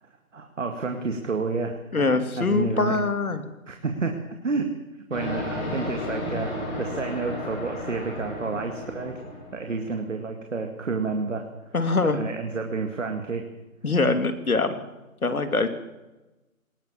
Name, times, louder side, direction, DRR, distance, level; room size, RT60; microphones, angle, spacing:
voice 1, 0.3-3.0 3.7-4.2 4.4-4.7 5.1-6.5 6.8-9.2 9.5-11.7 12.1-13.5, right 4 dB, 60° right, 4 dB, 2.3 m, -30 dB
voice 2, 1.9-3.4 11.7-12.2 13.8-14.8 15.2-15.7, left 3 dB, 80° left, 9 dB, 2.8 m, -23 dB
sound 1, 5.1-9.9, left 1 dB, 35° left, 7.3 m, -33 dB
20.0 x 18.5 x 7.3 m, 1.1 s
figure-of-eight pair, 170°, 43 cm